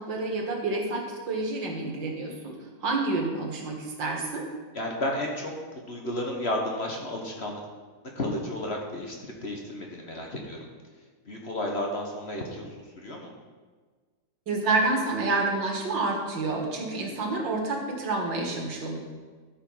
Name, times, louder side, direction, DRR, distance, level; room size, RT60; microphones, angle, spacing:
voice 1, 0.0-4.5 14.5-19.0, right 3 dB, 80° right, 1 dB, 2.3 m, -28 dB
voice 2, 4.7-7.6 8.1-9.2 9.4-10.6 11.3-13.3, left 1 dB, 40° left, 0 dB, 1.3 m, -32 dB
13.0 x 5.3 x 5.6 m, 1.4 s
omnidirectional pair, 2.0 m